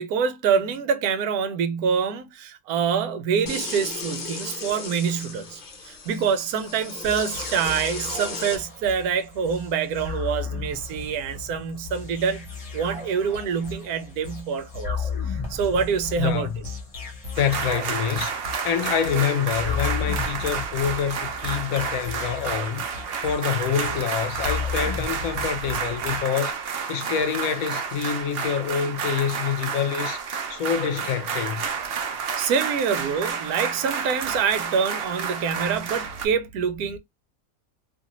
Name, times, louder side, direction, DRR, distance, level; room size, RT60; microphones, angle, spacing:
voice 1, 0.0-16.6 32.4-37.0, right 6 dB, 80° right, 1.1 m, -26 dB
sound 1, 3.4-8.6, left 4 dB, 45° left, 0.6 m, -35 dB
sound 2, 7.0-26.2, left 5 dB, 25° left, 1.0 m, -35 dB
voice 2, 16.2-16.5 17.3-18.3 18.6-31.6, left 8 dB, 70° left, 1.0 m, -26 dB
sound 3, 17.4-36.3, right 6 dB, 60° right, 0.6 m, -30 dB
2.7 x 2.5 x 2.9 m
omnidirectional pair, 1.6 m